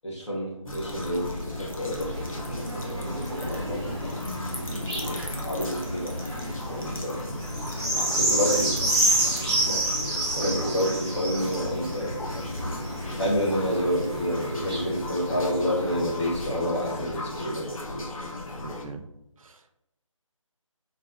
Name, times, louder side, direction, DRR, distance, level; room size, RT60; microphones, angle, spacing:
voice 1, 0.0-3.9 4.7-6.2 6.7-7.4 8.1-8.7 9.7-12.4 13.1-18.1, equal, 55° left, -4 dB, 1.3 m, -29 dB
sound 1, 0.7-18.8, left 2 dB, 80° left, 0.8 m, -37 dB
sound 2, 0.9-16.7 17.4-17.5, right 1 dB, 10° right, 0.6 m, -30 dB
voice 2, 8.1-8.8 18.6-19.1 19.4-19.9, right 3 dB, 80° right, 7 dB, 0.5 m, -40 dB
3.8 x 2.7 x 2.4 m, 0.86 s
figure-of-eight pair, 165°, 17 cm